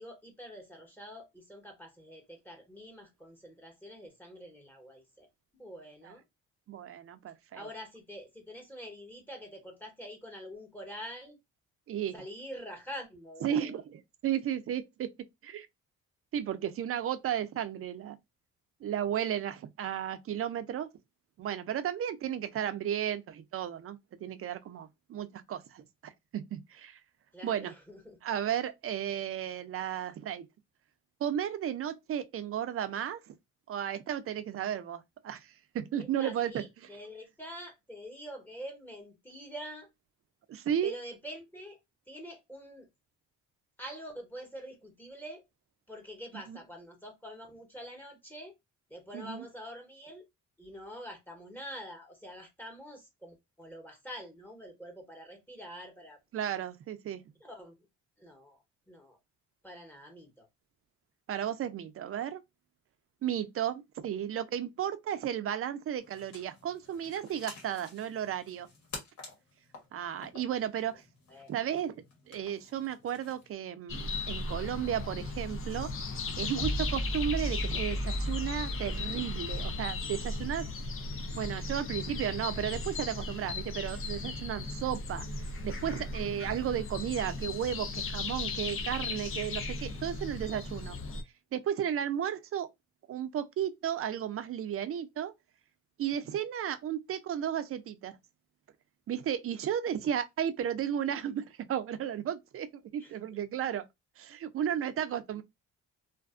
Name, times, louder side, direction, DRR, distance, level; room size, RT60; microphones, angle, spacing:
voice 1, 0.0-5.3 5.5-6.2 7.5-11.4 12.1-13.8 27.3-28.2 35.9-39.9 40.8-41.8 42.1-42.9 43.8-45.4 45.9-48.5 48.9-50.2 50.6-56.2 57.4-57.8 58.2-58.6 58.9-59.2 59.6-60.5 71.3-71.5 100.0-100.1 103.0-103.4, equal, 5° left, 1.0 m, -46 dB
voice 2, 6.7-7.6 11.9-12.2 13.4-15.1 15.4-15.7 16.3-18.2 18.8-20.9 21.4-27.0 27.4-27.7 28.2-30.5 31.2-33.3 33.7-35.5 35.7-36.6 40.5-40.9 46.5-46.6 49.1-49.5 56.3-57.2 61.3-62.4 63.2-68.7 69.9-71.0 71.5-72.0 72.3-80.7 81.3-85.3 85.6-91.0 91.5-92.7 93.1-95.3 96.0-98.2 99.1-103.9 104.2-105.4, right 10 dB, 50° right, 0.4 m, -34 dB
sound 1, 66.0-73.5, left 3 dB, 60° left, 1.2 m, -51 dB
sound 2, 73.9-91.2, left 3 dB, 45° left, 0.5 m, -37 dB
sound 3, 76.6-80.0, equal, 30° left, 0.9 m, -35 dB
2.5 x 2.3 x 2.4 m
cardioid pair, 90°, 30 cm